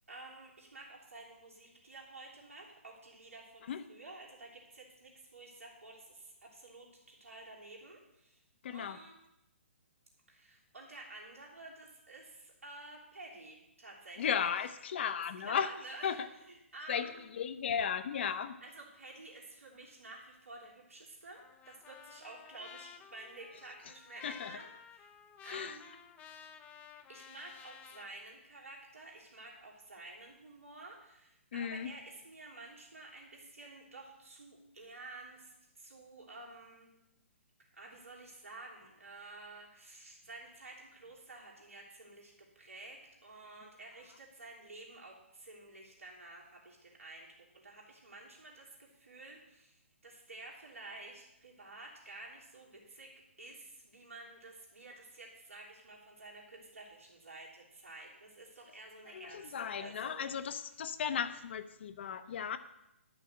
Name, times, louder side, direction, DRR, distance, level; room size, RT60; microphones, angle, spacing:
voice 1, 0.1-8.4 8.7-9.2 10.3-14.5 15.4-17.2 18.6-25.1 25.4-26.0 27.1-36.9 37.7-53.1 53.4-60.4, right 2 dB, 85° right, -3 dB, 3.2 m, -51 dB
voice 2, 8.6-9.0 14.2-15.7 16.0-16.2 16.9-18.5 24.2-24.5 25.5-25.7 31.5-31.9 59.1-62.6, left 7 dB, 55° left, 10 dB, 0.8 m, -35 dB
Trumpet, 21.4-28.1, left 7 dB, 20° left, 0.6 m, -54 dB
11.5 x 6.2 x 6.4 m, 0.88 s
hypercardioid pair, 135°, 7 cm